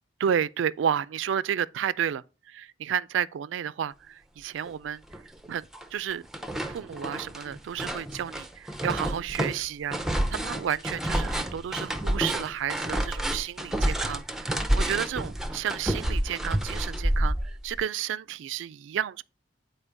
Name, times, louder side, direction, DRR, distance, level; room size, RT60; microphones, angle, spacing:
voice 1, 0.2-5.0 5.5-6.2 6.7-10.0 10.3-19.2, right 9 dB, 80° right, 0.3 m, -31 dB
sound 1, 4.7-4.8 5.1-5.9 6.1-17.8, right 1 dB, ahead, 0.5 m, -29 dB
8.7 x 4.4 x 3.4 m
head